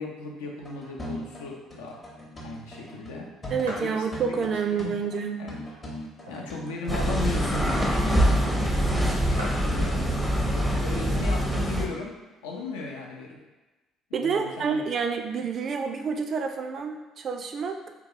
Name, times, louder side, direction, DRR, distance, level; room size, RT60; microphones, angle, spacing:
voice 1, 0.0-2.0 2.4-3.3 3.8-4.0 4.4-5.0 5.4-5.6 6.3-8.8 9.2-10.0 10.5-12.2 12.4-13.4 14.1-14.8, left 3 dB, 75° left, -1 dB, 0.5 m, -37 dB
sound 1, 0.6-7.6, equal, 35° left, 0.8 m, -40 dB
voice 2, 3.5-5.4 14.1-17.8, right 6 dB, 45° right, 6 dB, 0.3 m, -28 dB
sound 2, 3.6-4.0 4.6-4.7 5.5-6.7 7.1-7.2 7.3-7.6 8.4-8.5 8.7-8.8 9.0-9.1 9.3-9.8 10.6-11.0 11.5-11.6 11.8-12.6, equal, 90° right, 0.6 m, -40 dB
sound 3, 6.9-11.9, equal, ahead, 0.5 m, -24 dB
2.7 x 2.2 x 3.7 m, 1.2 s
figure-of-eight pair, 50°, 0 cm